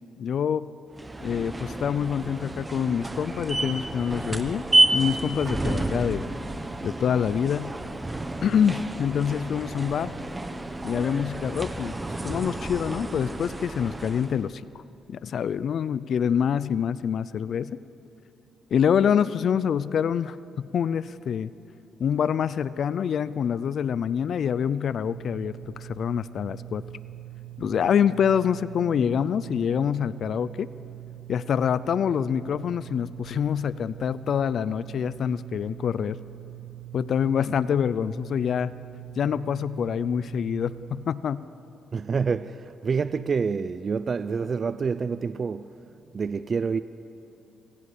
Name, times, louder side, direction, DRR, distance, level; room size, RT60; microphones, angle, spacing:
voice 1, 0.2-0.7 1.2-4.6 4.9-6.2 6.8-7.7 8.4-10.1 10.8-11.9 12.2-14.7 15.1-17.8 18.7-21.5 22.0-26.8 27.6-30.7 31.3-36.2 36.9-38.7 39.2-41.4, left 8 dB, 60° left, 0.5 m, -26 dB
sound 1, 0.9-14.5, right 2 dB, 15° right, 1.3 m, -30 dB
sound 2, 25.0-41.1, right 17 dB, 75° right, 1.0 m, -43 dB
voice 2, 41.9-45.7 46.1-46.8, right 5 dB, 40° right, 0.5 m, -27 dB
26.5 x 16.0 x 8.5 m
cardioid pair, 90°, 0 cm